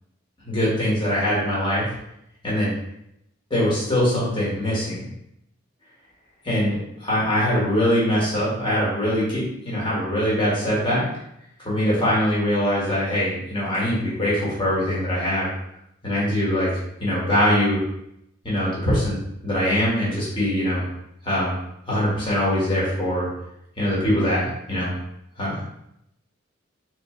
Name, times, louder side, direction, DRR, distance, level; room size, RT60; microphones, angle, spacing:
voice 1, 0.5-1.8 2.4-2.7 3.5-5.0 6.4-11.0 11.6-15.5 16.0-16.7 17.0-17.8 18.4-19.2 19.4-20.8 21.2-21.6 21.9-23.3 23.8-24.9 25.4-25.6, equal, 25° left, -7 dB, 1.7 m, -22 dB
4.2 x 3.3 x 3.8 m, 0.80 s
head